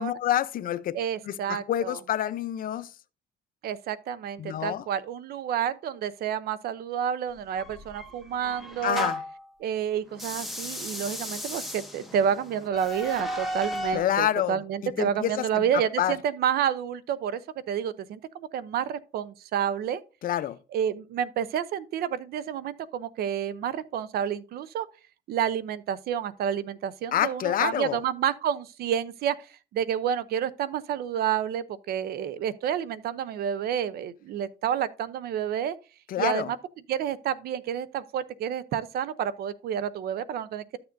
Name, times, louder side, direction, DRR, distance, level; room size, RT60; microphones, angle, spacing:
voice 1, 0.0-0.9 1.3-2.9 4.4-4.8 8.8-9.2 13.9-14.6 15.0-16.1 20.2-20.6 27.1-28.0 36.1-36.5, left 11 dB, 55° left, 0.7 m, -27 dB
voice 2, 0.9-2.0 3.6-9.1 9.6-17.4 17.7-20.0 20.7-24.9 25.3-29.3 29.7-35.8 36.2-36.6 36.9-40.8, right 9 dB, 65° right, 0.7 m, -29 dB
sound 1, 7.6-9.4 10.1-14.1, left 1 dB, ahead, 1.6 m, -35 dB
12.5 x 6.9 x 2.6 m
cardioid pair, 110°, 17 cm